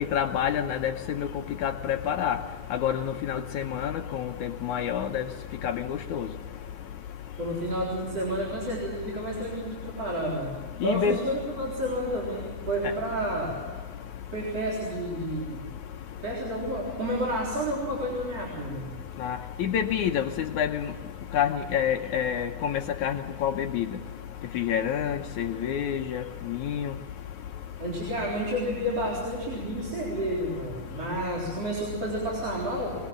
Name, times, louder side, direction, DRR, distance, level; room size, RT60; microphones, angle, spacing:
voice 1, 0.1-1.3 1.6-2.4 2.7-5.2 5.6-6.3 10.8-11.2 19.2-20.8 21.3-23.9 24.5-26.9, left 9 dB, 70° left, 5 dB, 2.0 m, -28 dB
voice 2, 7.4-10.5 10.8-13.6 14.3-15.7 16.2-18.9 27.8-33.0, right 1 dB, 45° right, -4 dB, 4.8 m, -30 dB
22.5 x 22.5 x 7.4 m, 1.4 s
omnidirectional pair, 4.1 m